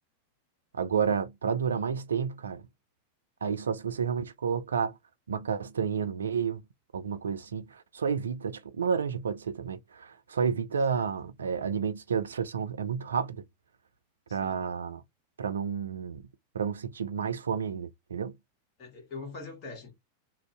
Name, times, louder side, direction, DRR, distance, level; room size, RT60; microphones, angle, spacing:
voice 1, 0.7-2.7 3.4-5.0 5.3-6.6 6.9-13.4 14.3-15.0 15.4-16.3 16.5-18.4, right 6 dB, 70° right, 0.3 m, -30 dB
voice 2, 14.3-14.6 18.8-19.9, left 3 dB, 35° left, 1.2 m, -43 dB
2.5 x 2.0 x 3.2 m
figure-of-eight pair, 90°, 0 cm